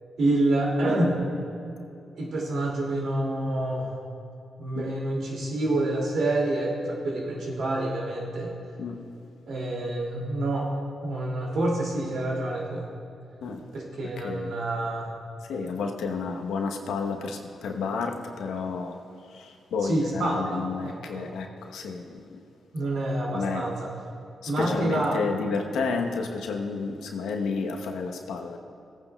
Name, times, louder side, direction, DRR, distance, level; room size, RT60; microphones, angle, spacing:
voice 1, 0.2-1.2 2.1-3.9 4.6-8.5 9.5-10.7 11.0-12.8 13.7-15.1 19.8-21.3 22.7-23.9 24.5-25.2, right 1 dB, 75° right, -3 dB, 2.4 m, -27 dB
voice 2, 15.5-19.0 19.3-22.4 23.3-23.6 24.4-28.6, left 4 dB, 85° left, 3 dB, 0.9 m, -31 dB
17.5 x 9.2 x 2.3 m, 2.7 s
supercardioid pair, 50°, 0 cm